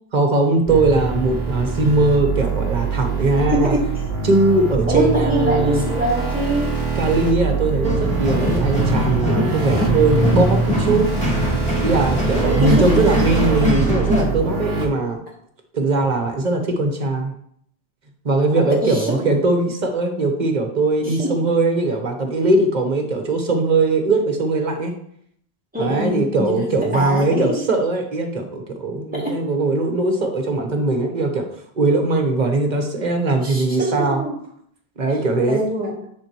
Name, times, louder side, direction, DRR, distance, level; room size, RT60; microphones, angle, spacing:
voice 1, 0.1-3.7 4.2-5.8 7.0-11.1 11.8-15.2 15.7-17.3 18.2-24.9 25.8-31.4 31.7-34.2 35.0-35.6, right 2 dB, 45° right, 4 dB, 1.2 m, -20 dB
sound 1, 0.7-14.9, right 5 dB, 30° left, 2.9 m, -24 dB
voice 2, 3.4-3.9 4.9-6.8 12.4-13.0 18.8-19.2 21.1-21.4 25.7-26.6 26.9-27.5 29.1-29.4 33.4-34.3 35.5-36.0, right 1 dB, 10° right, -4 dB, 2.2 m, -23 dB
sound 2, 7.8-14.2, left 1 dB, 5° left, 1.8 m, -22 dB
9.7 x 3.8 x 3.1 m, 0.66 s
omnidirectional pair, 1.0 m